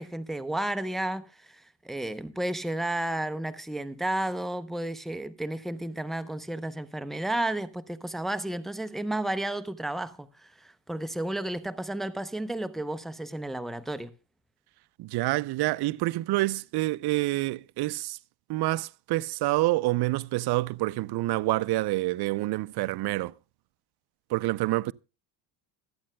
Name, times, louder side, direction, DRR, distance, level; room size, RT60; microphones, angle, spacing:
voice 1, 0.0-14.1, right 1 dB, ahead, 0.6 m, -32 dB
voice 2, 15.0-18.2 18.5-23.3 24.3-24.9, right 19 dB, 55° right, 0.6 m, -27 dB
25.5 x 8.7 x 2.2 m
cardioid pair, 115°, 48 cm